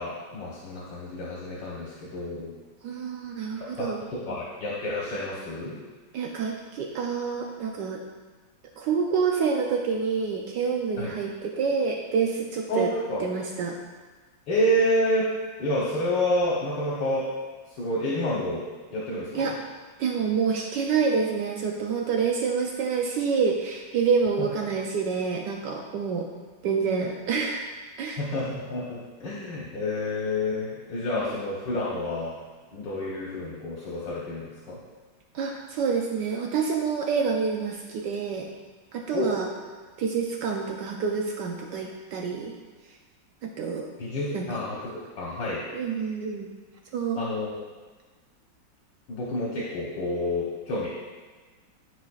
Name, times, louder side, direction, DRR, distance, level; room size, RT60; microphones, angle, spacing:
voice 1, 0.0-2.5 3.6-5.8 11.0-11.1 12.7-13.2 14.5-15.3 15.6-17.3 17.8-18.6 18.9-19.5 28.2-32.3 32.7-34.8 39.1-39.3 44.0-45.6 47.2-47.5 49.1-50.9, left 1 dB, 75° left, -6 dB, 1.8 m, -29 dB
voice 2, 2.8-4.0 4.3-4.4 6.1-8.0 8.8-12.9 13.2-13.8 19.3-19.6 20.0-26.3 26.6-27.6 28.0-28.2 35.3-38.5 38.9-39.5 40.0-42.5 43.6-43.9 44.3-44.6 45.7-46.5 46.9-47.2, right 5 dB, 75° right, 1 dB, 1.3 m, -27 dB
13.5 x 4.8 x 2.4 m, 1.4 s
omnidirectional pair, 2.0 m